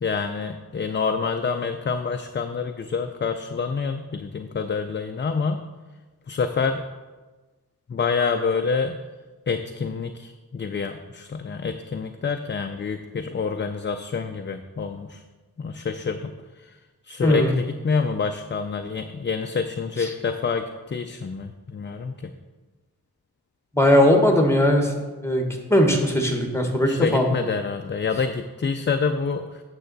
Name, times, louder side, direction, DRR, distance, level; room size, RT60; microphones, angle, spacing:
voice 1, 0.0-5.6 6.3-6.8 7.9-9.0 9.5-15.2 15.6-16.3 17.1-22.3 26.8-29.6, left 5 dB, 30° left, 7 dB, 0.4 m, -27 dB
voice 2, 17.2-17.5 20.0-20.1 23.7-24.9 25.2-27.4, left 1 dB, 5° left, 3 dB, 1.2 m, -19 dB
8.9 x 6.8 x 4.0 m, 1.3 s
wide cardioid pair, 110°, 37 cm